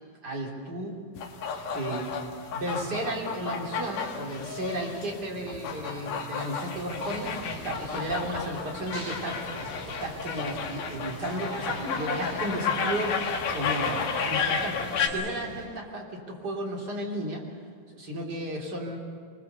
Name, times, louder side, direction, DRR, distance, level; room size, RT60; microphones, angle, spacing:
voice 1, 0.2-1.0 1.7-2.1 2.5-17.4 17.9-19.0, right 1 dB, 30° right, -2 dB, 3.3 m, -34 dB
sound 1, 1.2-15.1, left 5 dB, 65° left, 2.9 m, -32 dB
sound 2, 6.8-15.7, right 1 dB, 85° right, 9.1 m, -42 dB
23.5 x 21.5 x 6.9 m, 2.2 s
omnidirectional pair, 4.3 m